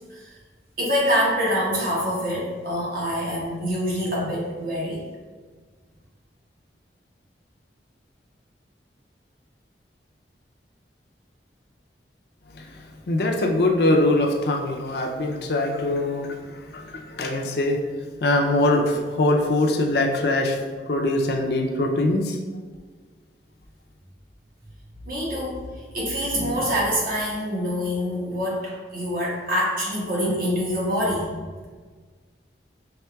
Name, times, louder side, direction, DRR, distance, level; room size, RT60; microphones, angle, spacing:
voice 1, 0.8-5.0 25.1-31.3, equal, 55° right, -5 dB, 1.2 m, -25 dB
voice 2, 13.1-17.8 18.2-20.6 20.9-22.4, left 2 dB, 65° left, 2 dB, 0.5 m, -22 dB
5.7 x 3.5 x 2.3 m, 1.5 s
head